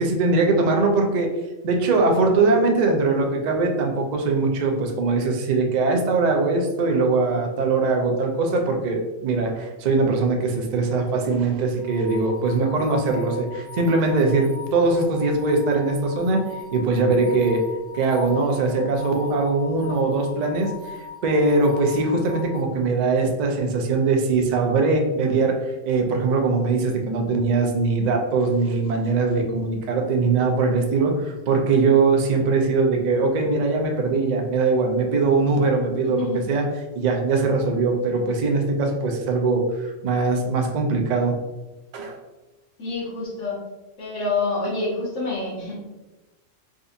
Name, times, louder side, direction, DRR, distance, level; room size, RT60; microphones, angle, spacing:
voice 1, 0.0-1.3 1.6-17.6 17.9-36.7 37.0-41.4 41.9-42.2, right 3 dB, 65° right, 3 dB, 0.4 m, -21 dB
sound 1, 11.8-22.6, left 5 dB, 50° left, 1.3 m, -40 dB
voice 2, 36.0-36.4 42.8-43.6 44.0-45.8, left 3 dB, 80° left, -5 dB, 1.2 m, -27 dB
3.7 x 2.6 x 2.4 m, 1.1 s
omnidirectional pair, 1.3 m